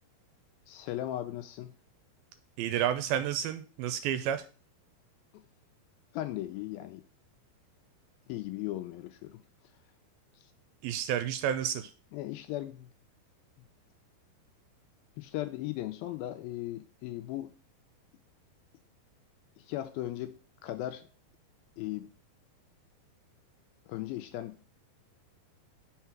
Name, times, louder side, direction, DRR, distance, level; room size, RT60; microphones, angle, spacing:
voice 1, 0.7-1.7 6.1-7.0 8.3-9.4 12.1-12.9 15.2-17.5 19.6-20.4 20.6-21.1 21.8-22.1 23.9-24.6, left 14 dB, 80° left, 2.3 m, -37 dB
voice 2, 2.6-4.5 10.8-11.9, right 10 dB, 80° right, 2.3 m, -30 dB
5.7 x 4.1 x 5.9 m
omnidirectional pair, 4.4 m